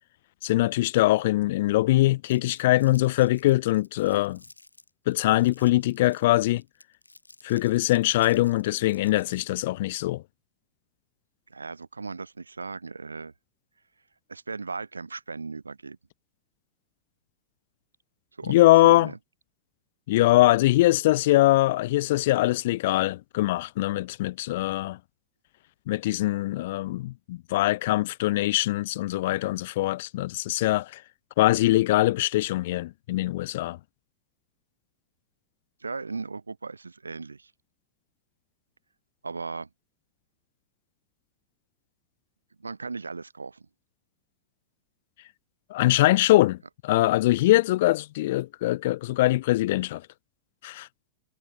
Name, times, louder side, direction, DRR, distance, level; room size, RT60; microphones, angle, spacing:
voice 1, 0.4-4.4 5.1-6.6 7.4-10.2 18.4-19.1 20.1-25.0 25.9-31.0 31.4-33.8 45.7-50.0 50.6-50.9, left 17 dB, 55° left, 0.3 m, -22 dB
Crumpling crinkling, 2.3-9.6, left 2 dB, 85° left, 2.1 m, -54 dB
voice 2, 11.5-13.3 14.3-16.0 18.4-18.5 18.8-19.2 35.8-37.5 39.2-39.7 42.6-43.7, right 4 dB, 80° right, 0.4 m, -37 dB
figure-of-eight pair, 90°, 0 cm